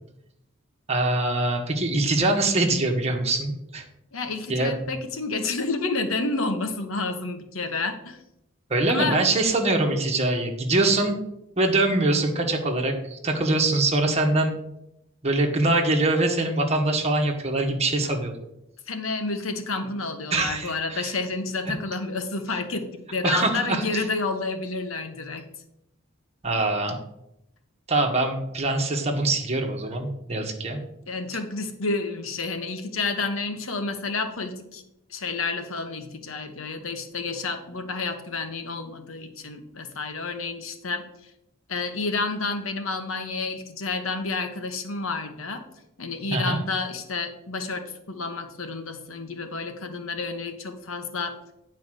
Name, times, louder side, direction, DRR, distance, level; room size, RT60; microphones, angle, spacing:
voice 1, 0.9-3.8 4.5-4.8 8.7-11.2 11.6-14.6 15.2-18.3 20.3-21.1 23.2-24.0 26.4-27.0 27.9-30.8 46.3-46.6, right 2 dB, 30° right, 2 dB, 1.5 m, -23 dB
voice 2, 4.1-8.2 8.9-9.2 18.9-25.5 31.1-34.8 35.1-41.0 41.7-45.6 46.0-51.3, left 3 dB, 75° left, 6 dB, 1.2 m, -30 dB
9.5 x 4.8 x 6.3 m, 0.83 s
head